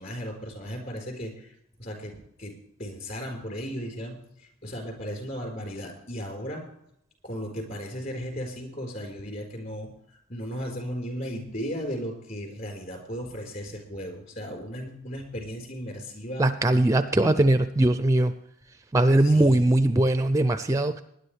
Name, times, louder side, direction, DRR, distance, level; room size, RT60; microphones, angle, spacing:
voice 1, 0.0-1.5 1.8-6.6 7.2-16.9 19.2-19.8, equal, 45° left, 2 dB, 4.3 m, -36 dB
voice 2, 16.4-18.3 18.9-21.0, right 1 dB, 15° right, 11 dB, 0.4 m, -21 dB
19.5 x 11.0 x 3.3 m, 0.74 s
head